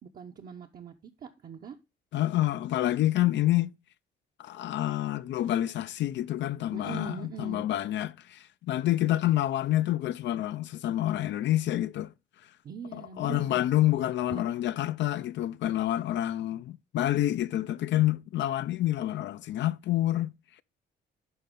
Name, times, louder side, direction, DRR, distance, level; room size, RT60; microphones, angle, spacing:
voice 1, 0.0-1.8 6.7-7.7 12.6-13.7 14.3-14.4, right 7 dB, 45° right, 0.7 m, -42 dB
voice 2, 2.1-3.7 4.4-12.1 12.9-20.3, left 14 dB, 65° left, 0.4 m, -28 dB
11.0 x 4.1 x 3.7 m
cardioid pair, 90°, 20 cm